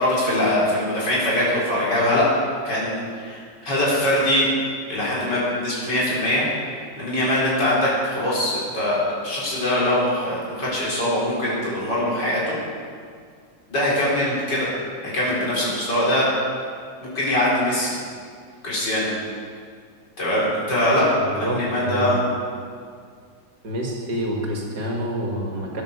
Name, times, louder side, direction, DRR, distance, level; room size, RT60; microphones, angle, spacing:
voice 1, 0.0-2.3 2.6-4.5 4.9-6.4 7.0-12.6 13.7-14.7 15.0-16.3 17.0-17.9 18.6-19.1 20.2-21.1 21.3-22.2, left 1 dB, 70° left, -7 dB, 4.7 m, -22 dB
voice 2, 21.2-22.2 23.6-25.8, right 1 dB, 65° right, -1 dB, 2.7 m, -27 dB
12.5 x 10.0 x 6.7 m, 2.1 s
omnidirectional pair, 1.9 m